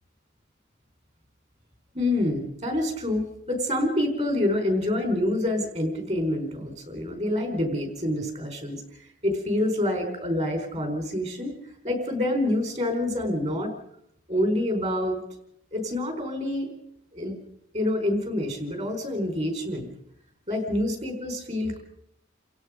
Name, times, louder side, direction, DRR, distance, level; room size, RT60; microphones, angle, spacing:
voice 1, 1.9-11.5 11.8-13.7 14.3-15.2 15.7-16.7 17.1-17.3 17.7-19.9 20.5-21.8, left 1 dB, 35° right, 5 dB, 4.7 m, -27 dB
29.5 x 16.5 x 5.2 m, 0.72 s
head